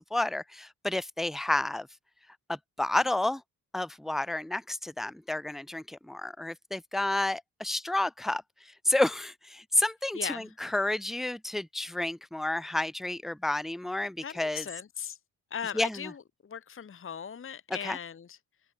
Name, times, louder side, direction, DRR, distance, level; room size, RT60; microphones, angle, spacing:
voice 1, 0.0-1.9 2.5-3.4 3.7-14.7 15.7-16.1 17.8-18.0, left 1 dB, ahead, 0.3 m, -30 dB
voice 2, 10.1-10.5 14.2-15.2 15.5-18.4, left 8 dB, 30° left, 1.1 m, -39 dB
wide cardioid pair, 155°, 39 cm